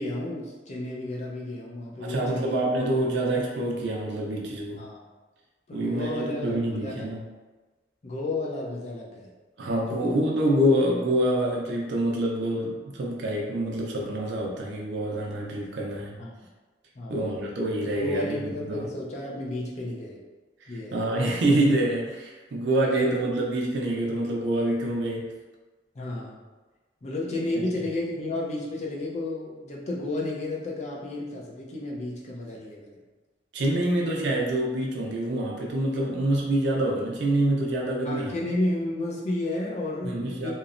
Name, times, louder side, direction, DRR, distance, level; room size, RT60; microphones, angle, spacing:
voice 1, 0.0-2.5 4.8-5.0 5.7-7.1 8.0-9.3 9.8-10.2 16.2-16.3 16.9-17.2 18.0-20.2 20.7-21.1 25.9-26.4 27.0-33.0 38.0-40.5, left 2 dB, 35° left, -3 dB, 0.5 m, -32 dB
voice 2, 2.0-4.8 5.7-7.2 9.6-16.1 17.1-18.9 20.6-25.3 33.5-38.4 40.0-40.5, right 1 dB, 65° right, -2 dB, 0.4 m, -26 dB
2.9 x 2.0 x 2.4 m, 1.2 s
head